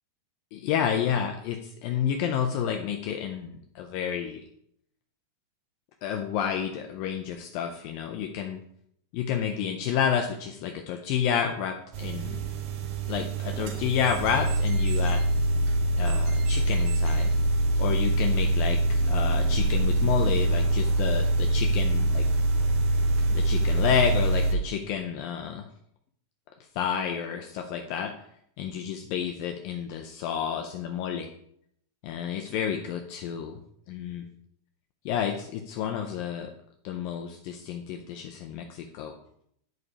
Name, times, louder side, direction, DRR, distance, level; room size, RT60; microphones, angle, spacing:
voice 1, 0.6-4.4 6.0-8.6 9.1-12.4 13.1-15.2 16.0-17.3 17.8-22.2 23.3-25.7 26.8-28.1 28.6-31.3 32.0-33.6 33.9-34.3 35.1-36.5 36.8-39.1, left 8 dB, 80° left, 3 dB, 2.2 m, -30 dB
sound 1, 11.9-24.6, right 1 dB, 75° right, 2.7 m, -24 dB
11.0 x 5.1 x 4.7 m, 0.70 s
omnidirectional pair, 4.5 m